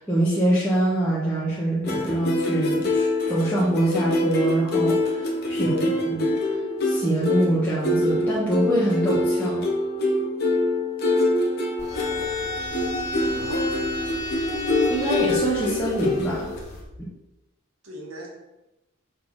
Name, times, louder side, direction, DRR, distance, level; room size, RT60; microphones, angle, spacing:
voice 1, 0.0-5.2 5.5-6.3 6.8-9.6 14.9-16.5, right 1 dB, 10° left, -8 dB, 1.3 m, -24 dB
sound 1, 1.8-16.6, left 2 dB, 50° left, 1.3 m, -25 dB
voice 2, 5.4-6.1 12.1-12.6 13.2-13.8 17.8-18.3, right 1 dB, 85° right, -1 dB, 1.9 m, -41 dB
sound 2, 11.8-16.8, left 1 dB, 35° left, 1.8 m, -33 dB
6.9 x 4.4 x 4.9 m, 0.97 s
head